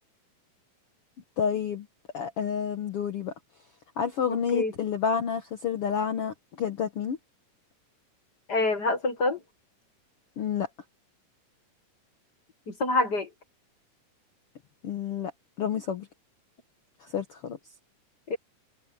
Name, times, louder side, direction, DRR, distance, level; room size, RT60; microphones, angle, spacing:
voice 1, 1.4-1.9 2.1-3.3 4.0-7.2 10.4-10.7 14.8-15.3 15.6-16.1 17.0-17.6, left 7 dB, 60° left, 1.6 m, -29 dB
voice 2, 4.3-4.7 8.5-9.4 12.7-13.3 18.3-18.4, left 2 dB, 40° left, 1.7 m, -26 dB
omnidirectional pair, 3.9 m